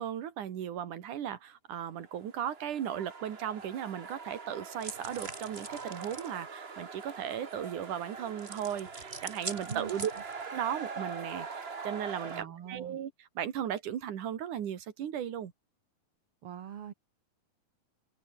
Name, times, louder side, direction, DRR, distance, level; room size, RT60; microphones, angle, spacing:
voice 1, 0.0-10.1 10.5-13.1 13.4-15.5, right 9 dB, 80° right, 3.5 m, -36 dB
sound 1, 2.0-12.4, right 5 dB, 35° right, 1.0 m, -43 dB
sound 2, 4.8-6.3 8.4-10.5, right 3 dB, 20° right, 2.7 m, -43 dB
voice 2, 9.7-10.1 12.3-13.0 16.4-16.9, right 9 dB, 50° right, 2.1 m, -43 dB
open air
omnidirectional pair, 3.5 m